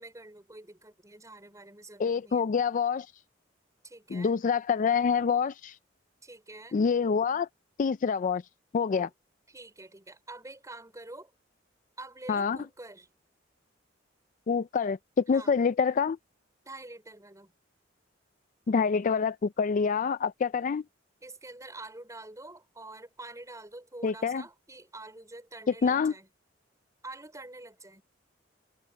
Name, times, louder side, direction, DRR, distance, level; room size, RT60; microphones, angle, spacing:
voice 1, 0.0-2.4 3.8-4.3 6.2-6.8 8.9-9.1 9.5-11.3 12.0-13.1 15.3-15.5 16.6-17.5 21.2-26.3 27.0-28.0, right 2 dB, 15° right, 5.0 m, -46 dB
voice 2, 2.0-3.1 4.1-5.8 6.7-7.5 7.8-8.4 8.7-9.1 12.3-12.6 14.5-16.2 18.7-20.8 24.0-24.4 25.8-26.1, left 6 dB, 45° left, 0.4 m, -26 dB
head